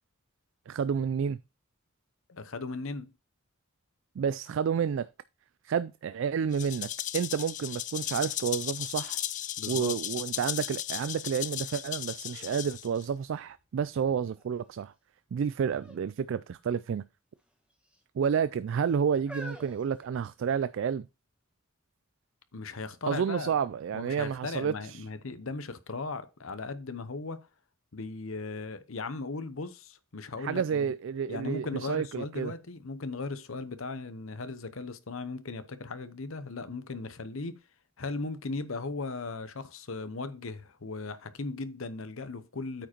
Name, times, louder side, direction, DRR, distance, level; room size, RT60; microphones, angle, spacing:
voice 1, 0.7-1.4 4.2-5.1 5.6-9.2 9.7-14.9 15.3-17.0 18.1-21.1 23.1-25.0 30.4-32.5, right 7 dB, 60° right, 0.3 m, -30 dB
voice 2, 2.3-3.1 9.6-9.9 22.5-23.5 23.9-27.4 27.9-30.9 31.3-37.6 38.0-42.9, left 3 dB, 70° left, 0.9 m, -37 dB
Rattle (instrument), 6.5-13.0, left 12 dB, 35° left, 0.3 m, -36 dB
sound 1, 12.2-13.8 14.4-14.9 15.7-16.1 16.3-16.5 17.4-18.0 18.7-20.8 21.5-21.6, equal, 5° right, 1.4 m, -49 dB
8.9 x 4.9 x 4.4 m
head